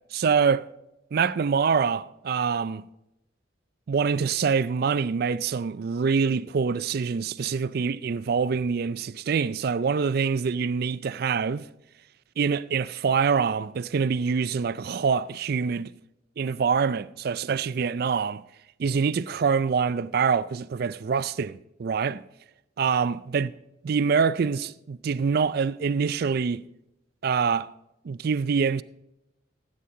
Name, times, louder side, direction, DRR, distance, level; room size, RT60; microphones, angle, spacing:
voice 1, 0.1-0.7 1.1-2.8 3.9-11.7 12.4-15.9 16.4-18.4 18.8-22.2 22.8-23.5 23.8-26.6 27.2-27.7 28.0-28.8, right 5 dB, 50° right, 0.4 m, -25 dB
16.5 x 8.6 x 3.8 m
head